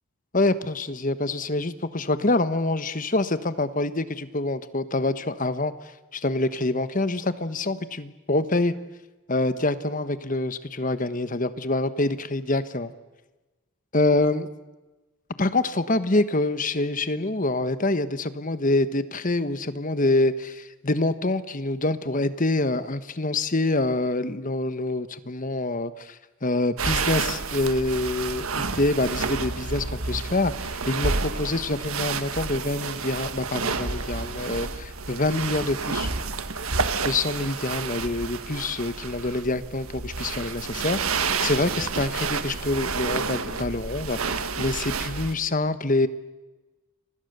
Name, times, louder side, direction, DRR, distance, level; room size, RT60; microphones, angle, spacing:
voice 1, 0.3-8.7 9.3-12.9 13.9-14.5 15.4-36.1 37.0-46.1, left 2 dB, 35° left, 12 dB, 1.3 m, -26 dB
sound 1, 26.8-45.3, right 4 dB, 75° right, 1.7 m, -30 dB
30.0 x 24.5 x 6.9 m, 1.1 s
head